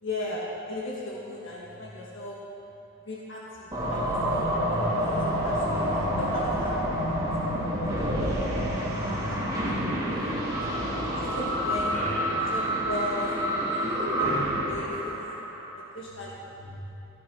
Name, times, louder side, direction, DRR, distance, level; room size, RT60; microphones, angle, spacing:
voice 1, 0.0-2.4 3.0-8.5 9.0-10.8 11.2-12.0 12.5-13.3 13.7-14.3 14.6-15.3 15.7-16.5, left 1 dB, 55° left, -4 dB, 1.8 m, -38 dB
voice 2, 1.6-2.0 4.5-6.2 7.7-7.8 8.7-9.5 10.0-11.1 11.9-12.5 15.9-16.8, left 1 dB, 5° left, -10 dB, 3.8 m, -44 dB
sound 1, 3.7-15.7, equal, 15° right, 2.4 m, -28 dB
13.5 x 12.5 x 5.6 m, 2.9 s
head